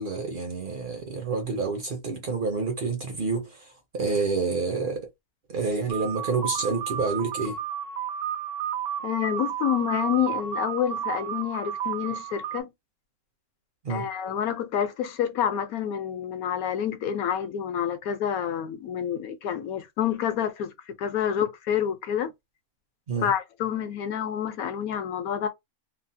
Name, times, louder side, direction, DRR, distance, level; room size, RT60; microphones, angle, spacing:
voice 1, 0.0-3.7 3.9-5.1 5.5-7.6 13.8-14.1 23.1-23.3, right 4 dB, 55° right, 0.6 m, -28 dB
sound 1, 5.9-12.6, right 9 dB, 80° right, 1.1 m, -32 dB
voice 2, 9.0-12.7 13.9-22.3 23.2-25.5, left 9 dB, 75° left, 1.1 m, -28 dB
3.1 x 2.0 x 2.6 m
omnidirectional pair, 1.6 m